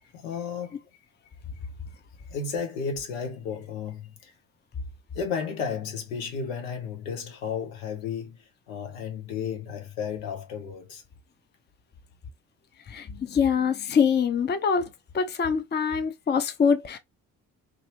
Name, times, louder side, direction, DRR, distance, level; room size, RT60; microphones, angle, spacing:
voice 1, 0.1-0.8 2.3-4.3 5.1-11.0, left 6 dB, 75° left, 0.8 m, -33 dB
voice 2, 12.9-14.9 15.1-17.0, left 6 dB, 25° left, 0.6 m, -24 dB
2.6 x 2.5 x 2.8 m
figure-of-eight pair, 40°, 39 cm